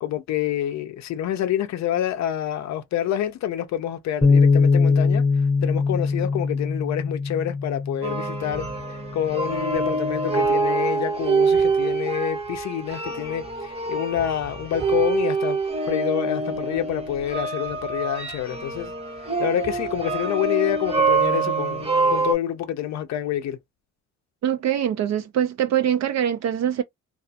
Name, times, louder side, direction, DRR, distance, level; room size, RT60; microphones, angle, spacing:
voice 1, 0.0-15.6 15.9-18.9 19.2-23.6, left 11 dB, 65° left, 0.5 m, -27 dB
Bass guitar, 4.2-10.5, left 4 dB, 20° left, 0.7 m, -22 dB
sound 1, 8.0-22.3, right 4 dB, 20° right, 0.8 m, -25 dB
voice 2, 24.4-26.8, right 10 dB, 60° right, 0.5 m, -23 dB
2.3 x 2.3 x 2.6 m
cardioid pair, 90°, 30 cm